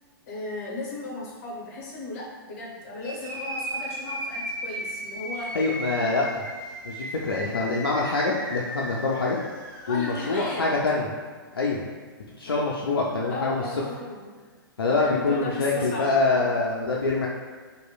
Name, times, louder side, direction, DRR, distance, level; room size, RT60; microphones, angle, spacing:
voice 1, 0.3-5.5 6.0-6.1 9.8-10.7 12.5-12.6 13.3-14.3 15.0-16.5, left 2 dB, 40° left, -3 dB, 0.8 m, -36 dB
sound 1, 3.0-10.9, right 1 dB, 25° right, 1.0 m, -36 dB
voice 2, 5.5-6.4 6.8-9.4 9.9-11.1 11.5-11.9 12.4-13.6 14.8-17.3, left 3 dB, 75° left, -3 dB, 0.4 m, -25 dB
2.9 x 2.7 x 2.2 m, 1.5 s
figure-of-eight pair, 110°, 12 cm